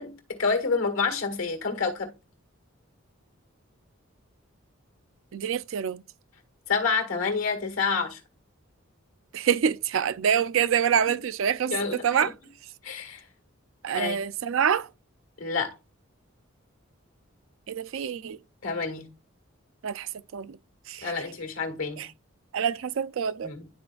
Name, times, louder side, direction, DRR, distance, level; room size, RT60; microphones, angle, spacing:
voice 1, 0.0-2.1 6.7-8.2 11.7-12.3 12.8-13.2 13.9-14.2 15.4-15.8 18.6-19.1 21.0-22.1 23.4-23.7, left 4 dB, 80° left, 1.8 m, -28 dB
voice 2, 5.3-6.0 9.3-11.8 12.0-12.3 13.8-14.9 17.7-18.4 19.8-20.6 20.9-21.1 22.0-22.1 22.5-23.5, right 8 dB, 70° right, 0.4 m, -26 dB
11.5 x 4.2 x 2.3 m
head